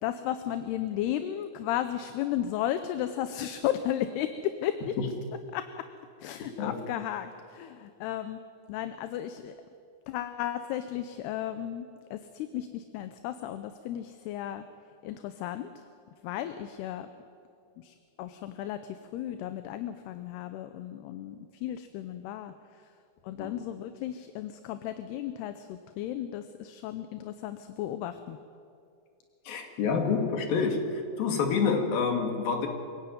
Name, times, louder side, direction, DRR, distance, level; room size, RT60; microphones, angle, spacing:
voice 1, 0.0-5.0 5.5-5.9 6.2-8.4 8.7-9.6 10.1-14.7 15.0-15.9 16.2-17.1 17.8-22.5 23.2-28.4, left 11 dB, 80° left, 10 dB, 2.8 m, -34 dB
voice 2, 29.5-30.9 31.2-32.7, left 5 dB, 60° left, 4 dB, 4.0 m, -27 dB
27.0 x 16.5 x 9.4 m, 2.4 s
omnidirectional pair, 4.9 m